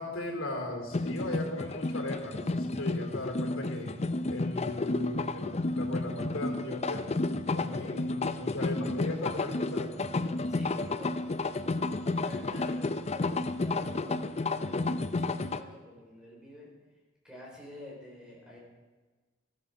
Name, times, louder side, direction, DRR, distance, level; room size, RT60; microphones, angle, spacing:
voice 1, 0.0-3.9 4.3-7.0 7.5-10.0, left 2 dB, 90° left, 1 dB, 3.5 m, -37 dB
sound 1, 0.9-15.6, left 2 dB, 35° left, 0.5 m, -31 dB
voice 2, 10.5-11.6 12.2-16.7 17.2-18.6, left 1 dB, 5° right, -4 dB, 4.9 m, -49 dB
14.0 x 13.5 x 5.0 m, 1.3 s
head